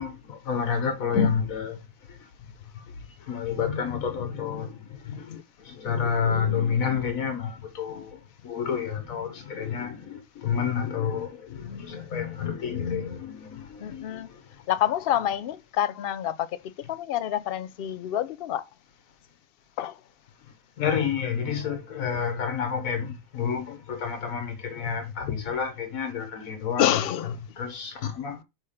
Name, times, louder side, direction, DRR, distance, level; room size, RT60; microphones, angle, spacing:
voice 1, 0.0-1.8 2.1-2.2 2.7-2.8 3.2-14.4 20.8-26.9 27.6-28.4, left 7 dB, 90° left, 1.4 m, -29 dB
voice 2, 13.8-14.3 14.7-18.7 19.8-20.0 26.8-27.4, left 11 dB, 65° left, 0.6 m, -27 dB
5.6 x 3.7 x 5.0 m
omnidirectional pair, 1.4 m